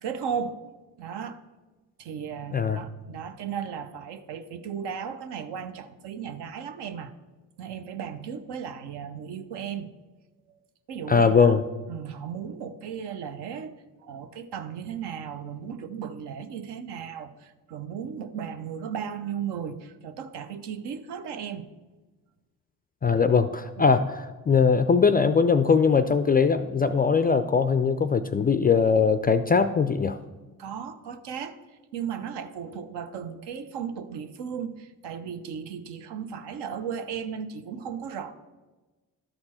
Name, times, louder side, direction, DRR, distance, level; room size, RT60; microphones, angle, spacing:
voice 1, 0.0-0.6 1.0-1.4 2.0-7.1 7.6-9.9 10.5-10.6 10.9-11.6 11.9-13.7 14.0-21.7 23.8-23.9 30.6-31.6 31.9-38.3, right 7 dB, 60° right, 0.8 m, -35 dB
voice 2, 11.1-11.6 23.0-30.2, left 5 dB, 20° left, 0.3 m, -21 dB
12.0 x 4.4 x 4.3 m
hypercardioid pair, 50°, 46 cm